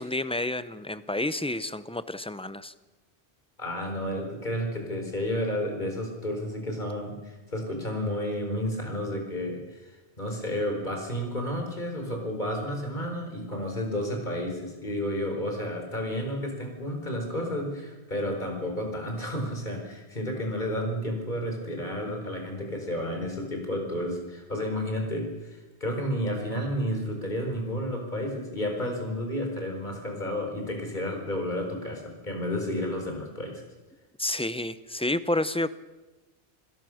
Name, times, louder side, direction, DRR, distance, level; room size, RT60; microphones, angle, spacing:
voice 1, 0.0-2.7 34.2-35.7, left 1 dB, 5° left, 14 dB, 0.5 m, -30 dB
voice 2, 3.6-33.6, equal, 45° left, 3 dB, 4.7 m, -31 dB
27.0 x 16.5 x 6.4 m, 1.2 s
omnidirectional pair, 1.1 m